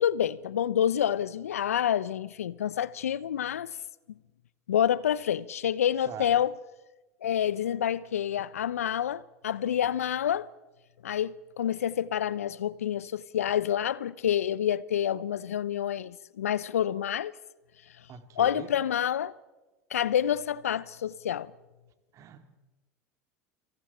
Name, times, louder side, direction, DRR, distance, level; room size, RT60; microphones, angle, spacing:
voice 1, 0.0-3.7 4.7-6.5 7.2-10.5 11.0-17.3 18.4-19.3 19.9-21.5, left 10 dB, 80° left, 0.7 m, -28 dB
voice 2, 18.1-18.7 22.1-22.6, right 9 dB, 45° right, 2.7 m, -43 dB
29.0 x 26.5 x 4.4 m
hypercardioid pair, 80°, 8 cm